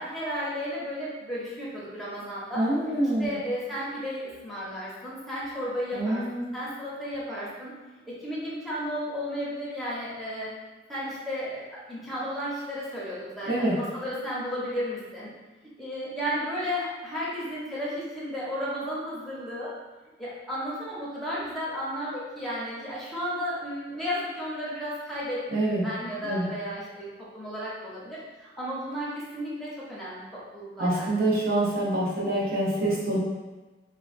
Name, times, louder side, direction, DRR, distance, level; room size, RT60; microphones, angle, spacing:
voice 1, 0.0-2.7 3.2-6.2 6.5-7.7 8.1-10.5 10.9-15.3 15.8-19.7 20.2-27.1 27.3-31.1 31.5-31.6, equal, ahead, -8 dB, 0.7 m, -33 dB
voice 2, 2.5-3.4 5.9-6.5 13.5-13.8 25.5-25.9 26.2-26.5 30.8-33.2, right 1 dB, 60° right, -5 dB, 0.7 m, -26 dB
3.6 x 2.1 x 2.4 m, 1.2 s
head